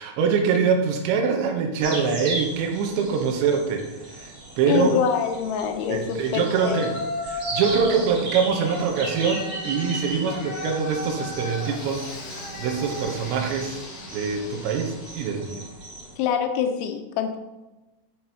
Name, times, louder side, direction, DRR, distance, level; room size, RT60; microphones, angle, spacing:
voice 1, 0.0-3.8 4.1-5.0 5.9-6.9 7.2-12.1 12.6-13.8 14.1-15.6, right 6 dB, 85° right, 3 dB, 3.0 m, -24 dB
sound 1, 1.8-16.1, right 1 dB, 55° right, 1.0 m, -37 dB
voice 2, 4.7-6.9 16.2-17.4, left 8 dB, 85° left, 6 dB, 3.0 m, -25 dB
Yell, 6.5-8.1 8.6-15.3, left 2 dB, 60° left, 1.9 m, -35 dB
7.8 x 5.5 x 2.8 m, 1.1 s
omnidirectional pair, 5.3 m